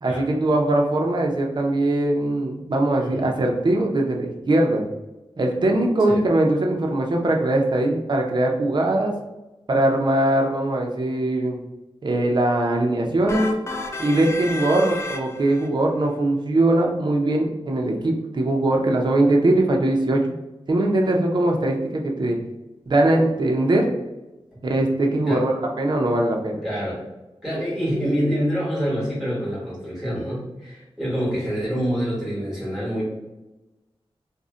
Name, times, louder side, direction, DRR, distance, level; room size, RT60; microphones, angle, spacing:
voice 1, 0.0-4.8 5.4-9.1 9.7-11.6 12.0-13.5 14.0-20.2 20.7-22.4 22.9-23.9 24.6-26.6, right 1 dB, 45° right, 1 dB, 0.5 m, -21 dB
sound 1, 13.3-15.7, left 2 dB, 25° left, 0.4 m, -32 dB
voice 2, 26.6-27.0 27.4-33.1, equal, 5° right, -6 dB, 1.3 m, -26 dB
2.5 x 2.1 x 3.6 m, 1.0 s
wide cardioid pair, 90°, 10 cm